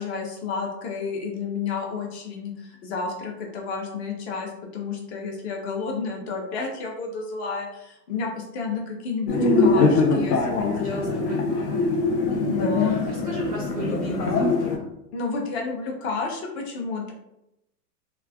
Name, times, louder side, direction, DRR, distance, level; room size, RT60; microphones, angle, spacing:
voice 1, 0.0-11.2 12.6-12.9 15.1-17.1, left 4 dB, 45° left, 1 dB, 0.8 m, -31 dB
sound 1, 9.3-14.8, left 3 dB, 75° left, 0.8 m, -22 dB
voice 2, 9.4-9.9 10.8-11.9 12.3-14.7, right 2 dB, 25° right, -4 dB, 0.3 m, -36 dB
3.2 x 2.4 x 2.3 m, 0.85 s
hypercardioid pair, 140°, 48 cm